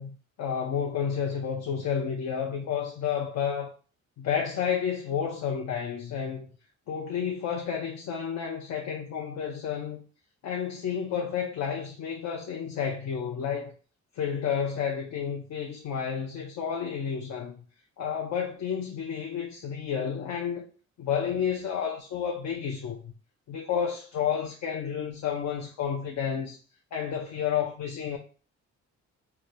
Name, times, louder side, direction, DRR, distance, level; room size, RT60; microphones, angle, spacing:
voice 1, 0.0-3.7 4.2-6.5 6.9-10.0 10.4-13.7 14.1-17.6 18.0-20.6 21.0-23.1 23.5-26.6 26.9-28.2, left 7 dB, 65° left, 0.6 m, -31 dB
3.8 x 2.2 x 3.1 m
cardioid pair, 90°, 30 cm